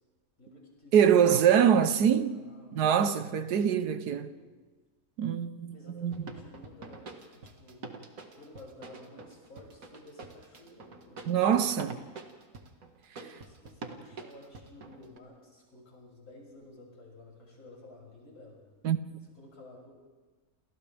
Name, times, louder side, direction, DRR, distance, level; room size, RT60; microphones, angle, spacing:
voice 1, 0.4-2.8 3.9-4.5 5.7-7.8 8.4-11.2 13.2-18.6 19.2-19.9, left 2 dB, 70° left, 7.2 m, -53 dB
voice 2, 0.9-2.3 2.7-4.3 5.2-6.1 11.3-12.0 18.8-19.2, right 8 dB, 85° right, 1.5 m, -24 dB
sound 1, 6.1-15.2, right 3 dB, 60° right, 2.1 m, -45 dB
29.5 x 28.5 x 3.5 m
omnidirectional pair, 1.7 m